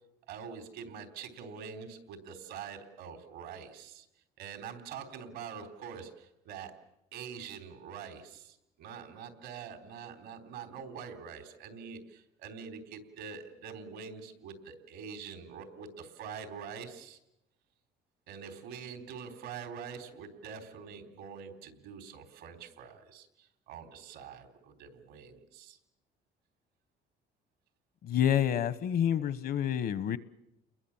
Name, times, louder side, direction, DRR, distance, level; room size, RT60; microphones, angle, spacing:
voice 1, 0.3-4.1 4.4-6.7 7.1-17.2 18.3-25.8, right 6 dB, 90° right, 3.7 m, -45 dB
voice 2, 28.0-30.2, left 9 dB, 65° left, 1.2 m, -28 dB
29.5 x 21.5 x 7.3 m
cardioid pair, 110°, 17 cm